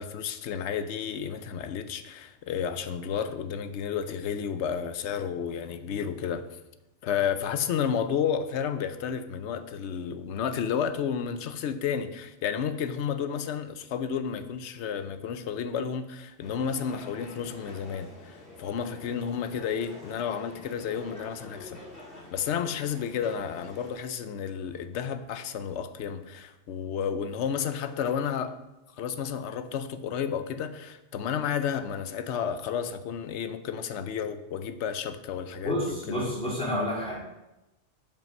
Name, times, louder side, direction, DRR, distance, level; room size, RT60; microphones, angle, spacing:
voice 1, 0.0-6.4 7.0-21.8 22.3-28.5 28.9-36.3, left 7 dB, 65° left, 10 dB, 0.9 m, -31 dB
sound 1, 16.4-23.9, left 2 dB, 45° left, 2.4 m, -47 dB
voice 2, 35.6-37.1, left 1 dB, 5° left, -6 dB, 3.0 m, -29 dB
7.6 x 5.4 x 5.3 m, 0.96 s
omnidirectional pair, 1.3 m